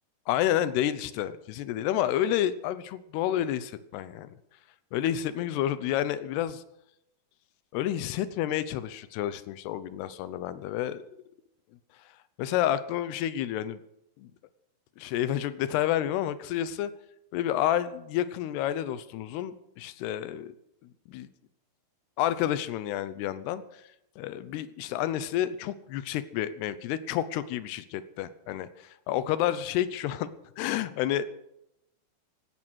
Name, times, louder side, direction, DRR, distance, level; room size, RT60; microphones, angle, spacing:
voice 1, 0.3-4.4 4.9-6.6 7.7-11.0 12.4-13.8 14.2-14.3 15.0-16.9 17.3-20.5 21.1-21.3 22.2-23.8 24.2-30.3 30.6-31.3, left 11 dB, 85° left, 14 dB, 2.9 m, -30 dB
16.5 x 12.5 x 6.3 m, 0.83 s
omnidirectional pair, 4.6 m